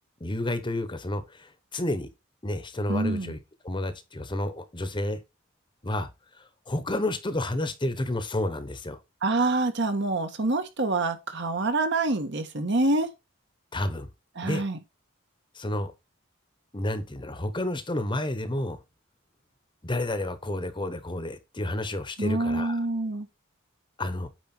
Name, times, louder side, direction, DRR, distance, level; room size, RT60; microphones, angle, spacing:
voice 1, 0.2-2.1 2.4-3.4 3.6-5.2 5.8-6.1 6.4-9.0 13.7-14.1 14.4-14.6 15.5-15.9 16.7-18.8 19.8-22.8 24.0-24.3, left 1 dB, 25° left, 1.0 m, -30 dB
voice 2, 2.9-3.3 9.2-13.1 14.4-14.8 22.2-23.3, right 2 dB, 60° right, 1.5 m, -26 dB
9.0 x 4.9 x 4.4 m
head